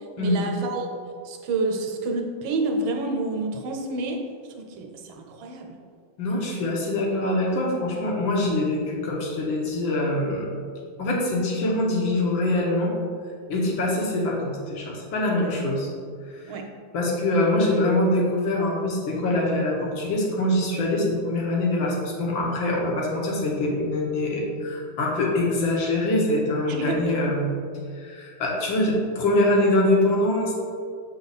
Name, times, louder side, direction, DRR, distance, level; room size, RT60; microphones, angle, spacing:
voice 1, 0.2-1.0 1.2-4.3 4.6-5.8 15.2-15.6 16.5-16.7 26.7-27.3, right 2 dB, 85° right, 3 dB, 1.6 m, -29 dB
voice 2, 6.2-10.5 11.0-12.9 13.5-15.9 16.3-16.5 16.9-27.6 28.0-30.5, left 1 dB, 75° left, -3 dB, 1.9 m, -24 dB
7.2 x 4.1 x 4.1 m, 2.1 s
omnidirectional pair, 2.1 m